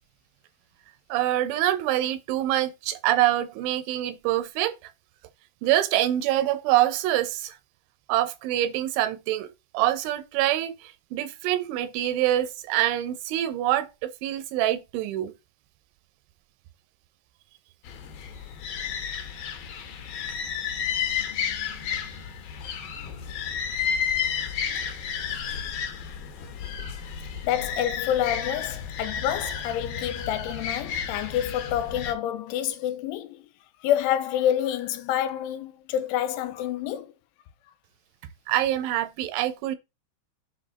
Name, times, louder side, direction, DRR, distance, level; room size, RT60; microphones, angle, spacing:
voice 1, 1.1-4.9 5.6-7.6 8.1-15.3 38.5-39.8, right 13 dB, 80° right, 3.1 m, -25 dB
sound 1, 17.8-32.1, left 7 dB, 65° left, 2.6 m, -32 dB
voice 2, 27.4-33.5 33.8-37.1, left 11 dB, 90° left, 3.2 m, -28 dB
8.3 x 6.4 x 4.1 m
omnidirectional pair, 5.6 m